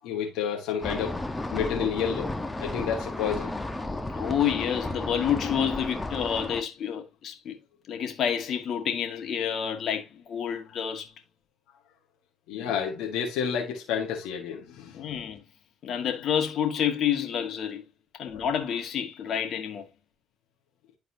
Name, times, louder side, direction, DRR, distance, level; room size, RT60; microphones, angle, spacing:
voice 1, 0.0-1.2 1.5-2.3 2.6-3.5 12.5-15.0 18.3-18.4, left 7 dB, 90° left, 1.5 m, -30 dB
sound 1, 0.8-6.6, left 2 dB, 15° left, 1.2 m, -33 dB
voice 2, 4.1-7.6 7.9-11.1 14.9-15.4 15.8-17.8 18.2-19.8, left 8 dB, 65° left, 1.9 m, -29 dB
12.0 x 4.1 x 2.8 m
supercardioid pair, 70°, 0 cm